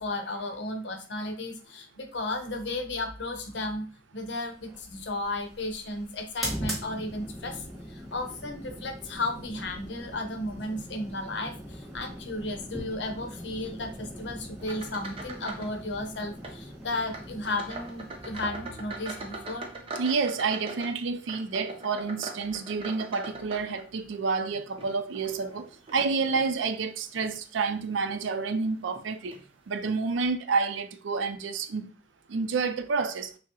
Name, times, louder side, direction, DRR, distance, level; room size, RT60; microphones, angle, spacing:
voice 1, 0.0-19.7, left 2 dB, 70° left, 0.7 m, -34 dB
sound 1, 4.6-19.9, equal, ahead, 1.1 m, -41 dB
sound 2, 13.7-17.8 18.2-23.7 24.2-24.7, equal, 25° left, 0.9 m, -55 dB
sound 3, 14.6-15.8 16.0-16.6 17.1-24.2 24.7-26.5 27.1-27.4 27.9-28.0 28.9-29.0 29.3-29.5, right 2 dB, 30° right, 0.6 m, -41 dB
voice 2, 20.0-29.4 29.7-31.9 32.3-33.3, right 4 dB, 80° right, 0.4 m, -29 dB
5.8 x 2.0 x 2.8 m
head